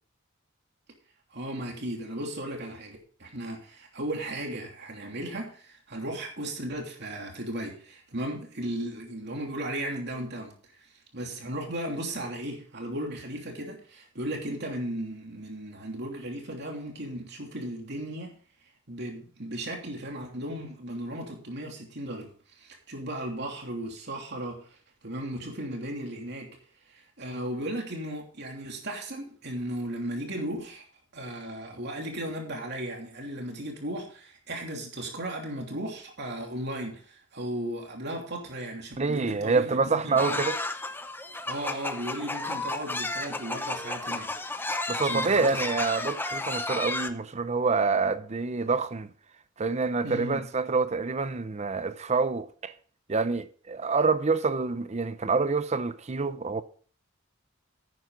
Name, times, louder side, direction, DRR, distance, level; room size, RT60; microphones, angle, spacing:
voice 1, 1.3-10.5 11.1-18.3 18.9-24.7 25.0-26.6 26.9-30.8 31.1-40.4 41.5-44.3 45.0-45.5 50.0-50.4, right 1 dB, 60° right, 3.0 m, -36 dB
voice 2, 39.0-40.6 44.9-49.1 49.6-52.7 53.1-56.6, right 4 dB, 35° right, 0.6 m, -27 dB
sound 1, 40.2-47.1, left 2 dB, 10° left, 0.7 m, -32 dB
11.0 x 9.4 x 3.9 m
head